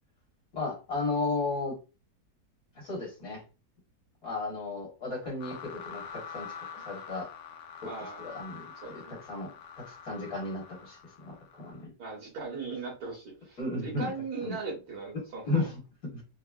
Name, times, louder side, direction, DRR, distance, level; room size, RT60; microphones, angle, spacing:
voice 1, 0.5-1.8 2.7-3.4 4.2-7.3 7.8-11.9 13.6-14.1 14.4-14.6 15.1-16.2, left 3 dB, 60° left, -2 dB, 1.7 m, -35 dB
sound 1, 5.4-11.8, left 7 dB, 85° left, 1.2 m, -45 dB
voice 2, 7.8-8.2 8.8-9.2 12.0-15.7, right 4 dB, 65° right, -1 dB, 1.7 m, -39 dB
3.9 x 2.0 x 2.3 m, 0.30 s
omnidirectional pair, 1.7 m